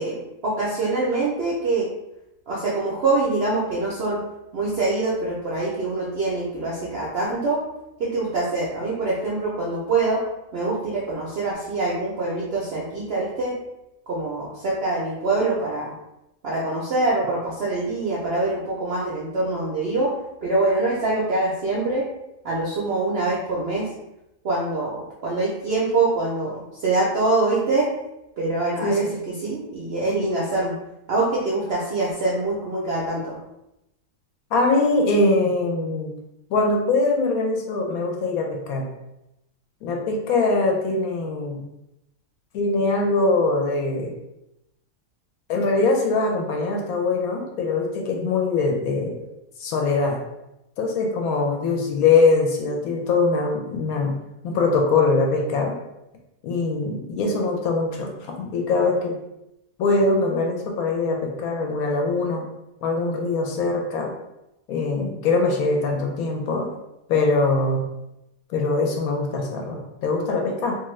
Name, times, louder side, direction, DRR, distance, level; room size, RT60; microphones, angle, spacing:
voice 1, 0.0-1.9 2.5-4.2 4.5-7.6 8.0-10.2 10.5-13.5 14.1-15.9 16.4-20.1 20.4-22.1 22.4-23.9 24.4-27.9 28.4-29.1 29.4-30.8 31.1-33.4, right 2 dB, 65° right, -6 dB, 0.6 m, -24 dB
voice 2, 34.5-36.1 36.5-38.9 39.8-41.6 42.5-44.1 45.5-49.1 49.6-50.2 50.8-54.1 54.4-55.8 56.4-58.1 58.4-59.2 59.8-62.5 62.8-64.1 64.7-66.7 67.1-67.8 68.5-70.8, left 3 dB, 70° left, 1 dB, 1.0 m, -22 dB
2.6 x 2.4 x 3.0 m, 0.89 s
omnidirectional pair, 1.7 m